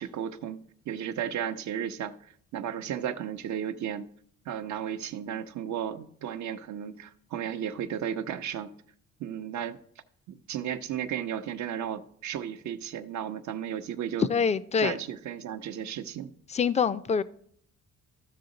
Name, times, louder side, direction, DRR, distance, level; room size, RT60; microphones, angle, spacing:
voice 1, 0.0-4.1 4.5-8.7 9.2-9.8 10.3-14.3 14.8-16.3, right 9 dB, 70° right, 0.8 m, -34 dB
voice 2, 14.3-15.0 16.5-17.2, left 6 dB, 25° left, 0.4 m, -25 dB
13.5 x 6.3 x 3.9 m
cardioid pair, 90°, 30 cm